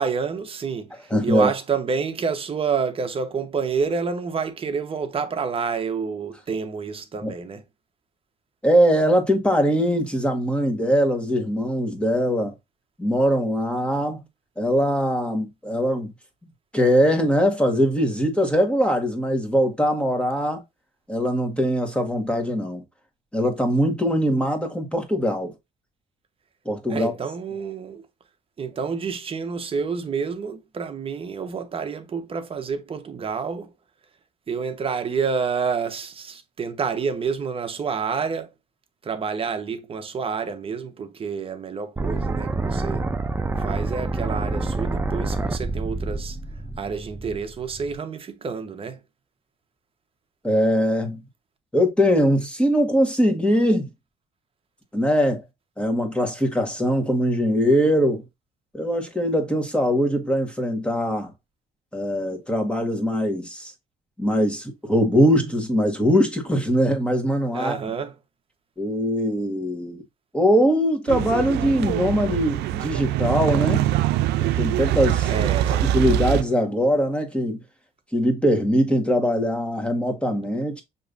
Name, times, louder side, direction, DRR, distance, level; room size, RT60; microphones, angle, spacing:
voice 1, 0.0-7.6 26.9-28.0 28.6-33.7 34.5-38.5 39.0-43.0 43.6-46.4 46.8-49.0 67.5-68.1 75.3-76.0, right 5 dB, 35° right, 1.0 m, -28 dB
voice 2, 1.1-1.5 7.2-7.3 8.6-12.5 13.0-14.2 14.6-16.1 16.7-20.6 21.1-22.8 23.3-25.5 26.6-27.1 50.4-51.2 51.7-53.9 54.9-55.4 55.8-58.2 58.7-61.3 61.9-63.7 64.2-67.8 68.8-70.0 70.3-73.8 74.4-75.3 75.7-77.6 78.1-80.8, equal, 5° left, 1.6 m, -21 dB
sound 1, 42.0-47.9, right 2 dB, 15° right, 0.4 m, -27 dB
sound 2, 71.1-76.4, right 13 dB, 80° right, 0.5 m, -23 dB
6.6 x 3.1 x 2.5 m
cardioid pair, 110°, 17 cm